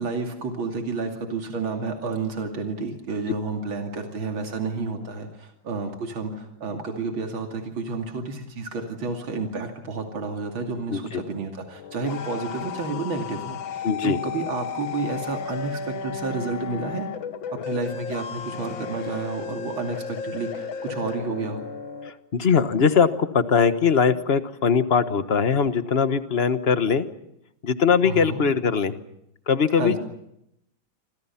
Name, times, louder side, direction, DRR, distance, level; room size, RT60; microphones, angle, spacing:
voice 1, 0.0-17.1 17.5-21.6 28.0-28.4 29.8-30.0, right 3 dB, 80° right, 3 dB, 3.4 m, -30 dB
voice 2, 10.9-11.2 13.8-14.2 22.0-27.1 27.6-28.9 29.5-30.0, left 6 dB, 35° left, 11 dB, 1.3 m, -21 dB
sound 1, 11.7-22.1, left 6 dB, 75° left, 2.2 m, -34 dB
28.5 x 26.0 x 5.9 m, 0.78 s
omnidirectional pair, 2.2 m